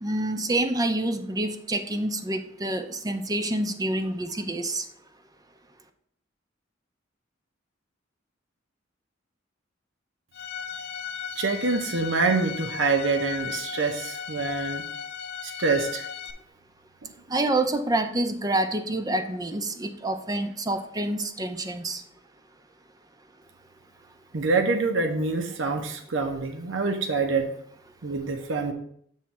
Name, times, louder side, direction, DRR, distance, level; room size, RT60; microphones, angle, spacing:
voice 1, 0.0-4.8 17.3-22.0, right 1 dB, 20° right, 8 dB, 0.5 m, -27 dB
Bowed string instrument, 10.3-16.3, left 7 dB, 55° left, 0.5 m, -36 dB
voice 2, 11.4-14.8 15.4-16.0 24.3-27.5 28.0-28.7, right 3 dB, 70° right, 5 dB, 0.8 m, -26 dB
7.4 x 3.2 x 5.7 m, 0.65 s
head